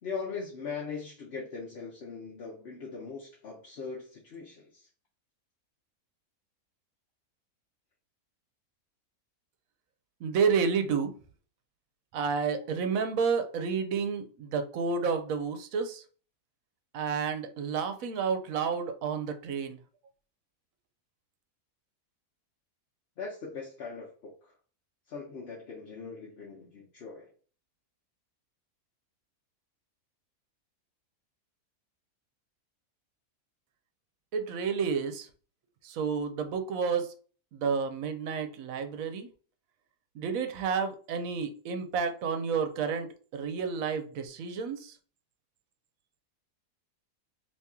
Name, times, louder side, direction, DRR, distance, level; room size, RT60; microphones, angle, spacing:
voice 1, 0.0-4.9 23.2-24.5 25.1-27.3, left 5 dB, 50° left, 0.9 m, -40 dB
voice 2, 10.2-11.1 12.1-16.0 16.9-19.8 34.3-35.3 35.8-37.1 37.5-39.3 40.2-44.9, right 6 dB, 70° right, 1.0 m, -30 dB
2.9 x 2.8 x 3.5 m
omnidirectional pair, 1.6 m